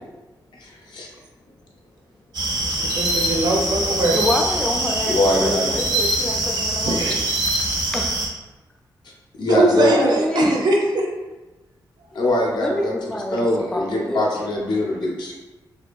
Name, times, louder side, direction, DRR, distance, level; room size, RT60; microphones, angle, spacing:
voice 1, 0.5-1.1 5.1-5.6 9.0-9.1 9.4-9.9 12.1-15.3, left 1 dB, 75° left, -2 dB, 0.6 m, -22 dB
sound 1, 2.3-8.3, right 1 dB, 85° right, 0.9 m, -23 dB
voice 2, 2.8-4.2 6.8-7.1 9.5-11.1, right 2 dB, 65° right, 0 dB, 0.5 m, -21 dB
voice 3, 4.1-7.0 7.9-8.2 9.7-10.7 12.5-14.3, left 1 dB, 10° left, 1 dB, 0.3 m, -26 dB
2.7 x 2.5 x 2.3 m, 1.1 s
wide cardioid pair, 145°, 8 cm